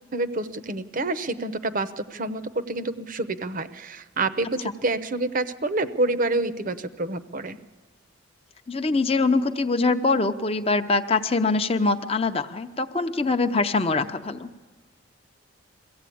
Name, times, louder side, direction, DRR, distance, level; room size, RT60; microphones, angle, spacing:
voice 1, 0.1-7.6, right 2 dB, 40° right, 12 dB, 0.7 m, -28 dB
voice 2, 8.7-14.5, left 3 dB, 30° left, 7 dB, 0.7 m, -23 dB
23.0 x 15.5 x 8.6 m, 1.3 s
head